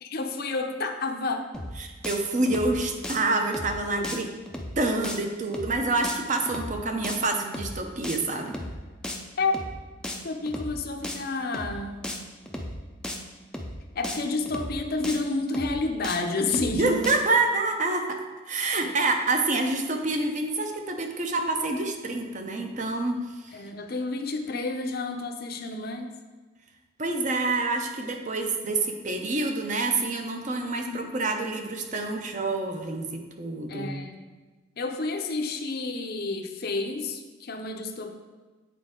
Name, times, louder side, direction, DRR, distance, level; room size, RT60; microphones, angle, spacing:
voice 1, 0.0-1.5 4.0-4.1 9.4-9.5 10.2-12.0 13.9-17.1 18.8-18.9 23.5-26.1 30.7-31.1 33.7-34.2 34.8-38.1, left 3 dB, 50° left, 5 dB, 0.6 m, -30 dB
sound 1, 1.5-1.8 2.0-2.2 2.5-2.8 3.0-3.2 3.5-3.8 4.0-4.2 4.5-4.8 5.0-5.2 5.5-5.8 6.0-6.2 6.5-6.8 7.0-7.2 7.5-7.8 8.0-8.2 8.5-8.8 9.0-9.2 9.5-9.8 10.0-10.2 10.5-10.8 11.0-11.2 11.5-11.8 12.0-12.2 12.5-12.8 13.0-13.2 13.5-13.8 14.0-14.2 14.5-14.8 15.0-15.2 15.5-15.8 16.0-16.2 16.5-16.8 17.0-17.2, left 1 dB, 5° left, 0.4 m, -35 dB
voice 2, 1.8-4.3 4.8-8.6 16.8-18.2 18.5-23.2 27.0-34.0, right 3 dB, 40° right, 4 dB, 0.6 m, -27 dB
8.4 x 4.3 x 3.7 m, 1.3 s
head